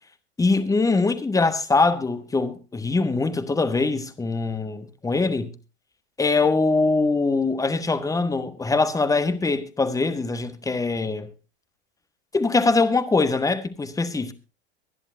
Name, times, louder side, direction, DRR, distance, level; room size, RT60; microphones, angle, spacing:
voice 1, 0.4-5.5 6.2-11.3 12.3-14.3, left 3 dB, 10° left, 1.6 m, -22 dB
24.0 x 11.0 x 2.7 m
figure-of-eight pair, 90°, 33 cm